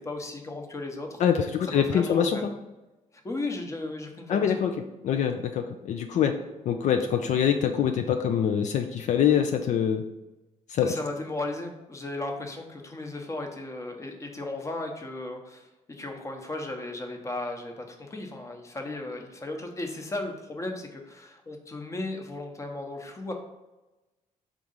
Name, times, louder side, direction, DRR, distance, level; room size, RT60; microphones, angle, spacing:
voice 1, 0.0-1.2 1.6-2.5 3.1-4.6 10.8-23.3, left 2 dB, 20° left, 3 dB, 0.9 m, -35 dB
voice 2, 1.2-2.5 4.3-4.7 5.0-6.3 6.7-10.0 10.7-10.9, left 8 dB, 65° left, 6 dB, 0.4 m, -24 dB
4.6 x 3.7 x 5.4 m, 1.0 s
cardioid pair, 125°, 13 cm